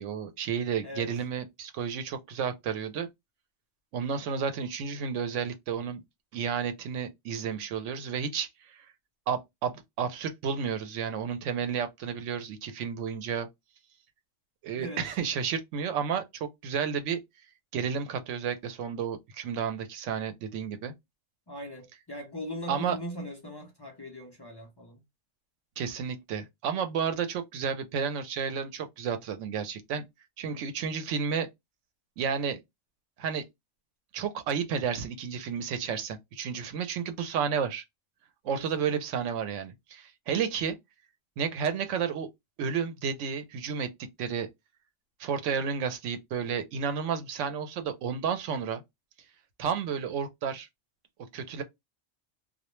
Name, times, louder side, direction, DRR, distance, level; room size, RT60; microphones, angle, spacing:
voice 1, 0.0-3.1 3.9-6.0 6.3-8.8 9.3-13.5 14.6-17.2 17.7-20.9 22.7-23.0 25.8-30.0 30.4-31.5 32.2-32.6 33.2-33.4 34.1-37.8 38.4-40.8 41.4-42.3 42.6-44.5 45.2-48.8 49.6-50.7 51.3-51.6, right 7 dB, 85° right, 0.9 m, -31 dB
voice 2, 21.5-25.0 30.5-30.7 38.5-38.7, equal, 40° left, 0.3 m, -40 dB
2.3 x 2.1 x 2.9 m
omnidirectional pair, 1.2 m